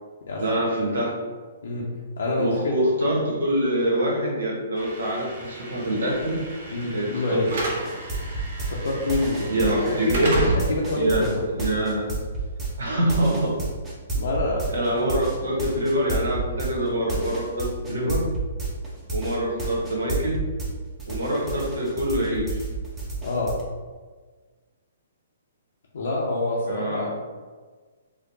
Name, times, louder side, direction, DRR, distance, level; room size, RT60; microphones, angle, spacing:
voice 1, 0.4-1.2 2.4-6.4 6.9-7.2 9.5-10.4 11.0-12.1 12.8-13.5 14.7-18.3 19.1-20.4 21.1-22.6 26.6-27.1, right 1 dB, 80° right, -2 dB, 1.1 m, -25 dB
voice 2, 2.2-2.8 6.7-7.5 8.7-9.5 10.1-10.2 10.5-11.4 14.1-14.6 17.9-18.1 23.2-23.5 25.9-27.1, left 2 dB, 70° left, -4 dB, 0.6 m, -26 dB
Slam / Alarm, 4.8-12.8, right 1 dB, 60° right, 0.9 m, -32 dB
sound 1, 7.8-20.7 21.0-23.6, right 3 dB, 15° right, 0.8 m, -30 dB
4.4 x 2.1 x 2.7 m, 1.4 s
hypercardioid pair, 130°, 0 cm